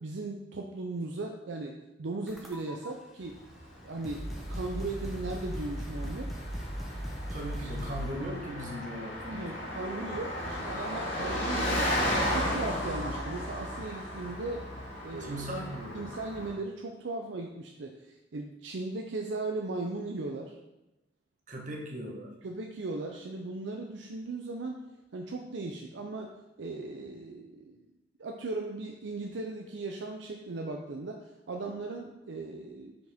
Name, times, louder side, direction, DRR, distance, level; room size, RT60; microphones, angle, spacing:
voice 1, 0.0-3.4 3.8-4.2 4.5-6.3 7.6-7.7 9.3-11.9 12.3-14.7 15.0-15.5 15.9-20.6 22.4-24.8 25.1-26.3 26.6-27.8 28.2-31.2 31.5-33.0, right 2 dB, 70° right, 2 dB, 0.5 m, -37 dB
sound 1, 2.3-2.9 3.7-3.8 4.0-8.2, equal, ahead, 0.8 m, -38 dB
Car passing by, 3.3-16.5, equal, 90° left, 2.2 m, -35 dB
voice 2, 7.3-9.7 15.2-16.0 21.5-22.3, equal, 40° right, -2 dB, 1.2 m, -38 dB
5.9 x 5.1 x 3.5 m, 0.95 s
head